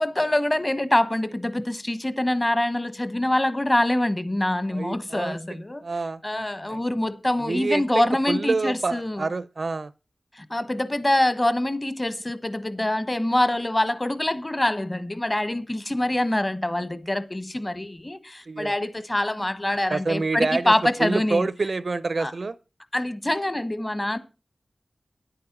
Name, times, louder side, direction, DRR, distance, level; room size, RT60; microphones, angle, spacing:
voice 1, 0.0-5.8 6.2-9.3 10.3-21.5 22.2-22.3 22.9-24.2, left 1 dB, 25° left, 1.2 m, -25 dB
voice 2, 4.7-5.4 5.8-6.2 6.7-6.8 7.4-9.9 18.5-18.8 19.9-20.7 21.0-22.6, right 3 dB, 60° right, 0.6 m, -27 dB
10.5 x 8.8 x 6.0 m
wide cardioid pair, 80°, 0 cm